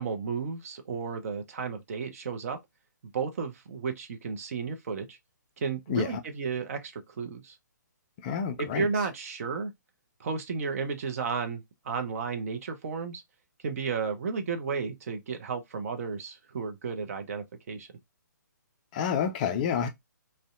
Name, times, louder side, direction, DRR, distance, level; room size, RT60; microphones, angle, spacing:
voice 1, 0.0-2.6 3.1-5.2 5.6-7.6 8.6-9.7 10.2-13.2 13.6-17.9, right 5 dB, 50° right, 0.6 m, -33 dB
voice 2, 5.9-6.2 8.2-8.9 18.9-19.9, left 7 dB, 25° left, 0.3 m, -29 dB
2.5 x 2.1 x 2.4 m
figure-of-eight pair, 140°, 10 cm